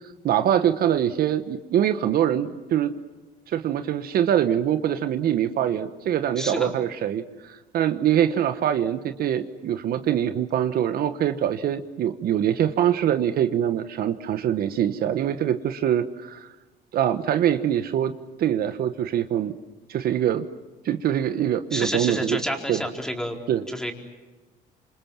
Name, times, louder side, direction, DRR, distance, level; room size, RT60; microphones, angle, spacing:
voice 1, 0.2-2.9 3.5-16.5 16.9-18.1 18.4-19.5 19.9-20.4 20.8-22.4 22.7-22.8 23.5-23.6, right 10 dB, 65° right, 9 dB, 1.3 m, -24 dB
voice 2, 6.4-6.7 21.7-23.4 23.7-23.9, equal, 5° left, 2 dB, 4.4 m, -29 dB
28.0 x 27.0 x 7.4 m, 1.3 s
cardioid pair, 110°, 17 cm